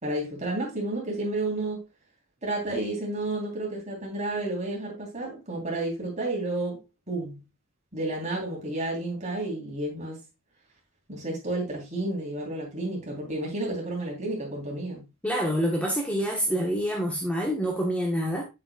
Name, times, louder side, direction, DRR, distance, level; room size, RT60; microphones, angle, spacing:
voice 1, 0.0-1.8 2.4-6.8 7.1-7.5 7.9-10.2 11.1-15.1, right 2 dB, 35° right, 3.4 m, -31 dB
voice 2, 15.2-18.4, equal, 5° left, 1.2 m, -27 dB
8.1 x 7.5 x 2.3 m
head